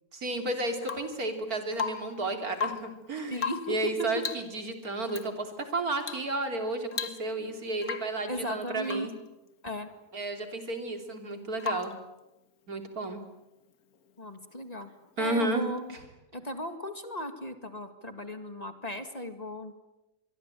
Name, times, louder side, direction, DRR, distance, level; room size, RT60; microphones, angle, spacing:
voice 1, 0.1-9.1 10.1-11.9 12.7-13.2 15.2-15.7 15.9-16.0, right 2 dB, 80° right, 6 dB, 3.6 m, -32 dB
Rain / Water tap faucet / Drip, 0.8-1.2 1.7-2.2 2.5-3.0 3.4-3.8 4.2-4.5 5.1-5.3 6.0-6.3 6.6-6.7 6.9-7.5 7.8-8.2 8.8-9.2 11.6-12.0 13.9-14.0, left 6 dB, 80° left, 1.9 m, -36 dB
voice 2, 3.3-3.6 8.3-9.1 9.6-9.9 14.2-14.9 15.2-16.0 16.3-19.7, equal, 25° left, 8 dB, 2.1 m, -37 dB
25.5 x 22.5 x 9.1 m, 0.99 s
omnidirectional pair, 1.5 m